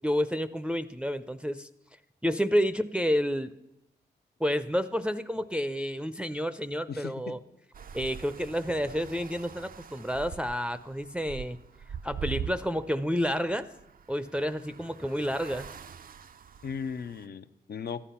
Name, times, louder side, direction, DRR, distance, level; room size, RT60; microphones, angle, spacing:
voice 1, 0.0-1.7 2.2-3.5 4.4-7.4 7.9-11.6 12.0-13.7 14.1-15.7, equal, 5° right, 9 dB, 0.6 m, -30 dB
voice 2, 6.9-7.4 16.6-18.1, left 6 dB, 65° left, 11 dB, 0.7 m, -37 dB
sound 1, 7.7-17.3, right 7 dB, 55° right, 0.5 m, -43 dB
14.0 x 10.0 x 5.7 m, 0.86 s
cardioid pair, 45°, 18 cm